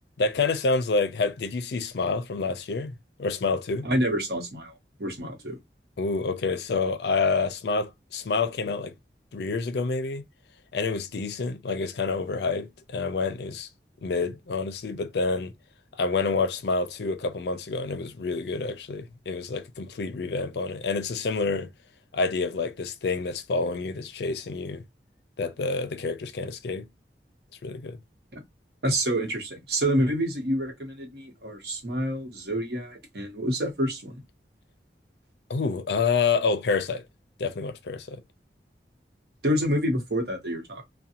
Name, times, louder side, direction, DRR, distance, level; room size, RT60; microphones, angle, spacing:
voice 1, 0.2-3.9 6.0-8.9 9.3-10.2 10.7-13.7 14.0-15.5 16.0-21.7 22.1-24.8 25.4-26.9 27.6-28.0 35.5-37.0 37.4-38.2, left 4 dB, 75° left, 0.4 m, -28 dB
voice 2, 3.8-4.7 5.0-5.6 28.3-28.4 28.8-34.2 39.4-40.8, equal, 65° right, 1.0 m, -27 dB
2.6 x 2.2 x 2.7 m
head